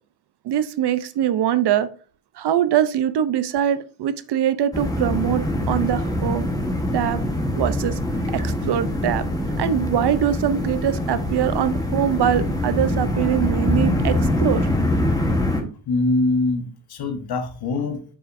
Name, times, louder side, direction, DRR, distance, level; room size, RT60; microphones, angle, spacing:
voice 1, 0.4-1.9 2.4-6.5 6.9-7.2 7.5-8.0 8.3-9.2 9.6-14.6, right 10 dB, 55° right, 0.7 m, -22 dB
sound 1, 4.7-15.6, left 1 dB, 10° left, 1.2 m, -24 dB
voice 2, 15.9-18.0, left 2 dB, 50° left, 1.3 m, -23 dB
7.8 x 6.2 x 2.6 m
cardioid pair, 165°, 47 cm